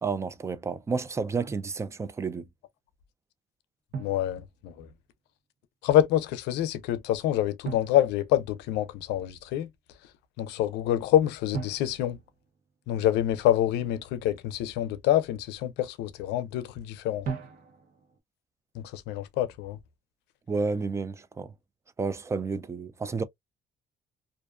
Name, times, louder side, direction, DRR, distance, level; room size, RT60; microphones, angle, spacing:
voice 1, 0.0-2.5 20.5-21.5 22.0-23.2, right 4 dB, 15° right, 0.3 m, -31 dB
Drum, 1.5-1.8 3.9-5.1 7.6-9.1 11.5-13.2 17.2-18.2, right 5 dB, 60° right, 0.8 m, -40 dB
voice 2, 4.0-4.9 5.8-9.7 10.4-12.2 12.9-17.3 18.7-19.8, left 12 dB, 85° left, 0.5 m, -26 dB
2.4 x 2.3 x 2.2 m
cardioid pair, 110°, 17 cm